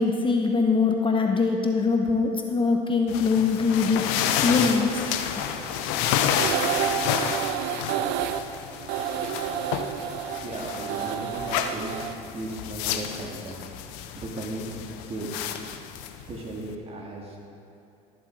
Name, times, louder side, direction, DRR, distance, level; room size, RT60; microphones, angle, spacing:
voice 1, 0.0-5.0, left 4 dB, 30° left, 3 dB, 1.0 m, -23 dB
sound 1, 3.1-16.7, left 9 dB, 80° left, 0.7 m, -30 dB
sound 2, 4.9-12.2, right 9 dB, 70° right, 0.6 m, -31 dB
voice 2, 10.4-14.7 15.0-15.3 16.3-17.5, right 2 dB, 35° right, -1 dB, 2.3 m, -36 dB
13.0 x 7.4 x 4.7 m, 2.8 s
supercardioid pair, 80°, 18 cm